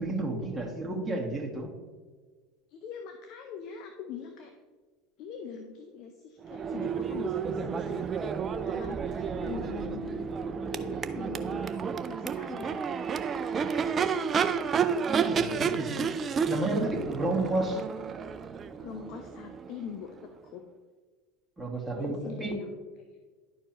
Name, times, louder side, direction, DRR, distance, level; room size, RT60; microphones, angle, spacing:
voice 1, 0.0-1.7 15.1-15.9 16.5-17.8 21.6-22.5, right 2 dB, 10° right, -2 dB, 2.0 m, -31 dB
voice 2, 2.7-4.5 5.2-10.3 10.7-11.8 12.1-12.8 15.5-16.1 17.1-17.2 18.8-20.6 21.9-22.7 23.1-23.2, left 6 dB, 55° left, 6 dB, 0.7 m, -43 dB
Crowd / Race car auto racing / Accelerating revving vroom, 6.4-20.3, right 6 dB, 35° right, 0.5 m, -31 dB
11.5 x 4.6 x 3.0 m, 1.4 s
hypercardioid pair, 80°, 0 cm